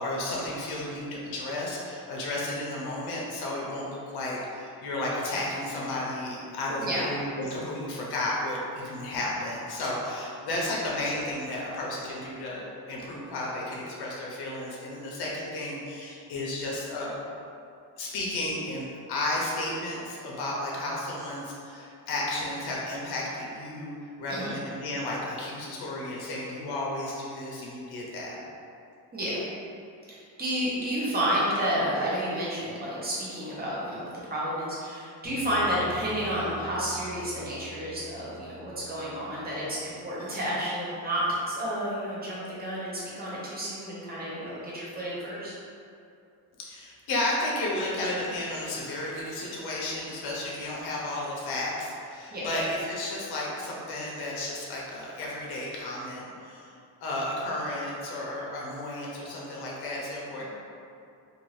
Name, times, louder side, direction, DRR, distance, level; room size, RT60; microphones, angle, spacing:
voice 1, 0.0-17.2 18.0-23.9 24.2-28.4 46.6-56.7 57.0-60.4, left 1 dB, 70° left, -4 dB, 0.7 m, -33 dB
voice 2, 30.1-45.5 52.3-52.5 60.4-60.5, equal, 25° right, -8 dB, 0.8 m, -31 dB
Bass guitar, 35.2-39.7, right 1 dB, 85° right, 1.0 m, -45 dB
2.6 x 2.5 x 3.2 m, 2.5 s
cardioid pair, 135°, 39 cm